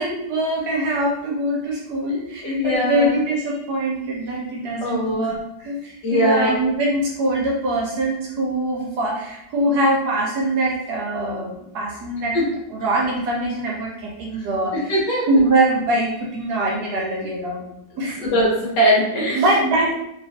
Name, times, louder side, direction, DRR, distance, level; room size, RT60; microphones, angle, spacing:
voice 1, 0.0-12.4 12.7-14.9 15.3-17.6 18.0-18.2 19.3-19.9, right 1 dB, 70° right, -3 dB, 1.0 m, -23 dB
voice 2, 2.4-3.1 4.8-5.3 6.0-6.5 12.3-12.5 14.9-15.3 18.2-19.4, equal, 70° left, -5 dB, 1.7 m, -20 dB
3.3 x 3.0 x 2.7 m, 0.81 s
omnidirectional pair, 2.0 m